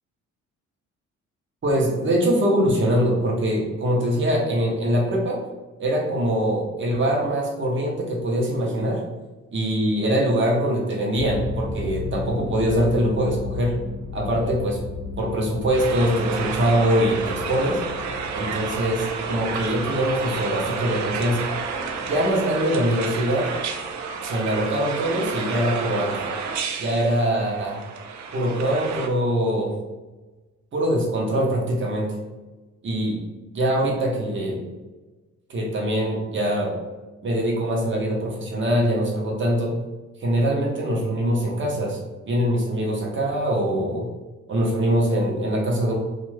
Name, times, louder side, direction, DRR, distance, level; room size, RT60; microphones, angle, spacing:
voice 1, 1.6-5.4 5.8-9.0 9.5-13.7 14.1-14.8 15.2-17.8 18.3-21.4 22.1-23.5 24.2-26.1 26.8-27.8 28.3-29.7 30.7-32.1 32.8-33.2 33.5-34.6 35.5-36.7 37.2-39.7 40.2-42.0 42.3-44.1 44.5-45.9, equal, 40° right, -1 dB, 0.9 m, -23 dB
sound 1, 11.2-24.4, left 3 dB, 35° left, 1.1 m, -35 dB
sound 2, 15.7-29.1, right 5 dB, 70° right, 0.5 m, -30 dB
2.6 x 2.4 x 3.1 m, 1.2 s
cardioid pair, 90°, 30 cm